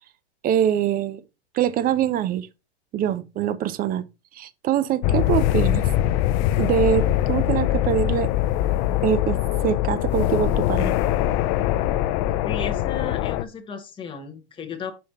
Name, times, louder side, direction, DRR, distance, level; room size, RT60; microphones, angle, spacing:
voice 1, 0.4-1.2 1.5-2.5 2.9-4.0 4.4-5.8 6.6-8.3 9.0-9.4 9.6-11.0, right 10 dB, 25° right, 0.6 m, -23 dB
sound 1, 5.0-13.4, left 13 dB, 40° left, 0.5 m, -22 dB
voice 2, 11.7-12.1 12.4-14.9, left 5 dB, 15° left, 1.1 m, -35 dB
5.8 x 5.2 x 4.2 m
hypercardioid pair, 125°, 34 cm